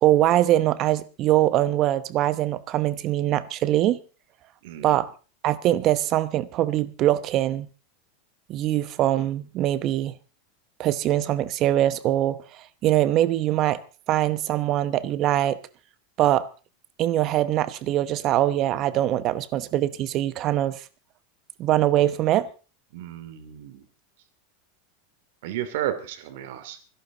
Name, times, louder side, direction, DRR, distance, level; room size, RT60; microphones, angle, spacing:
voice 1, 0.0-4.0 4.8-5.1 5.4-7.7 8.5-10.1 10.8-13.8 14.1-15.6 16.2-16.4 17.0-20.8 21.6-22.5, right 13 dB, 30° right, 0.9 m, -22 dB
voice 2, 4.6-5.0 22.9-23.8 25.4-26.8, right 11 dB, 60° right, 2.8 m, -33 dB
25.5 x 11.5 x 4.0 m
supercardioid pair, 165°, 0 cm